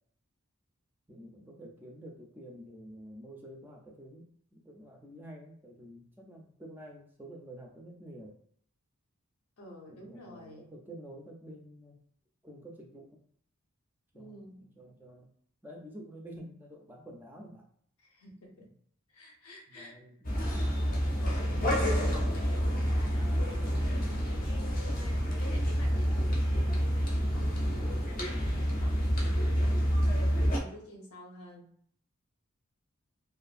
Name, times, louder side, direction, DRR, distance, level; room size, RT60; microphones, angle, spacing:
voice 1, 1.1-8.4 9.9-12.0 12.4-13.2 14.1-15.3 15.6-17.7 19.7-20.5 21.2-22.3 23.1-24.1 29.9-30.5, right 1 dB, 10° right, 0 dB, 0.3 m, -49 dB
voice 2, 9.6-10.7 14.1-14.7 18.0-18.7 19.1-20.0 20.9-28.0 28.5-29.8 30.1-31.7, left 1 dB, 90° left, 0 dB, 0.8 m, -49 dB
sound 1, 20.2-30.6, equal, 40° left, 0.5 m, -28 dB
2.5 x 2.4 x 2.5 m, 0.62 s
head